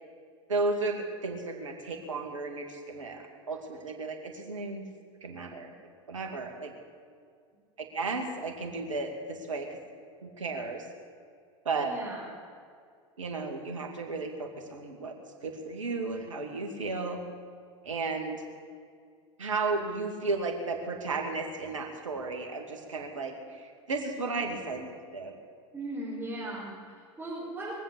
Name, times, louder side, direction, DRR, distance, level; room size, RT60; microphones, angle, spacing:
voice 1, 0.5-4.8 5.2-5.7 6.1-6.7 7.9-9.8 10.2-10.8 11.6-11.9 13.2-15.1 15.4-17.2 17.8-18.4 19.4-25.4, right 3 dB, 85° right, 3 dB, 2.3 m, -34 dB
voice 2, 11.8-12.2 25.7-27.7, right 1 dB, 10° right, -10 dB, 5.5 m, -38 dB
22.5 x 7.8 x 8.1 m, 2.2 s
hypercardioid pair, 90°, 16 cm